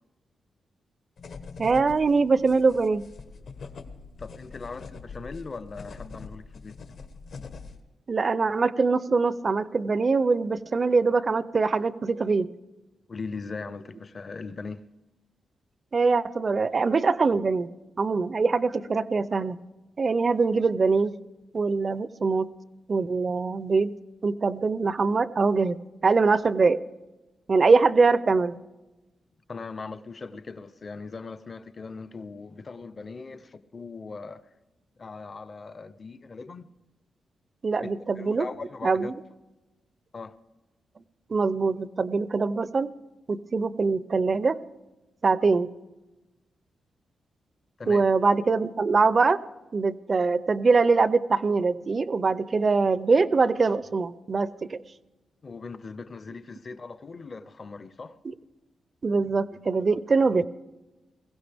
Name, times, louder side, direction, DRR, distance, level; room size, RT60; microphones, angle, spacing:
sound 1, 1.2-7.8, left 4 dB, 65° left, 1.2 m, -43 dB
voice 1, 1.6-3.1 8.1-12.5 15.9-17.7 18.0-19.6 20.0-21.2 21.5-22.5 22.9-23.9 24.2-25.8 26.0-26.8 27.5-28.6 37.6-38.5 38.8-39.1 41.3-42.9 43.3-44.6 45.2-45.7 47.9-49.4 49.7-54.8 58.2-58.3 59.0-60.5, right 4 dB, 35° right, 0.4 m, -23 dB
voice 2, 4.2-6.8 13.1-14.8 29.5-34.4 35.0-36.7 37.8-37.9 38.2-39.1 40.1-40.3 47.8-48.1 55.4-58.2, left 4 dB, 35° left, 0.6 m, -39 dB
21.5 x 16.0 x 3.4 m
wide cardioid pair, 140°, 0 cm